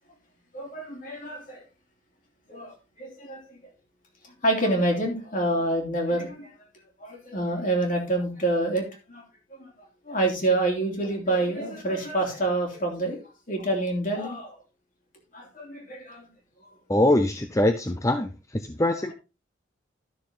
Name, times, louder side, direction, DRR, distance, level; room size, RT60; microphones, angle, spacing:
voice 1, 0.5-1.6 2.5-3.6 4.4-6.5 7.0-9.2 9.5-9.7 10.1-13.2 13.5-14.6 15.3-16.3, right 2 dB, 40° left, 1 dB, 2.9 m, -27 dB
voice 2, 16.9-19.1, left 1 dB, 15° left, 8 dB, 0.5 m, -23 dB
12.0 x 6.6 x 3.8 m, 0.30 s
head